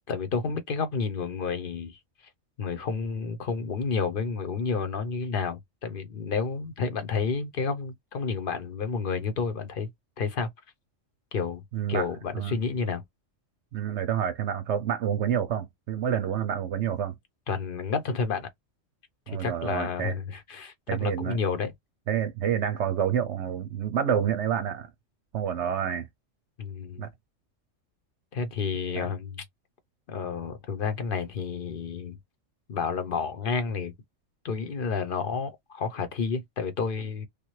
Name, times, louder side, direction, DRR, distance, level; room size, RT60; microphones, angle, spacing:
voice 1, 0.1-2.0 2.6-9.9 10.2-10.5 11.3-11.6 11.9-13.0 17.5-18.5 19.3-20.7 21.0-21.7 26.6-27.1 28.3-29.4 30.1-32.2 32.7-33.9 34.4-37.3, left 5 dB, 50° left, 0.9 m, -30 dB
voice 2, 11.7-12.1 12.3-12.6 13.7-17.2 19.3-20.1 20.9-21.4 22.1-24.9 25.3-26.1 27.0-27.1 29.0-29.1, right 9 dB, 70° right, 0.8 m, -28 dB
3.4 x 2.3 x 3.1 m
omnidirectional pair, 1.3 m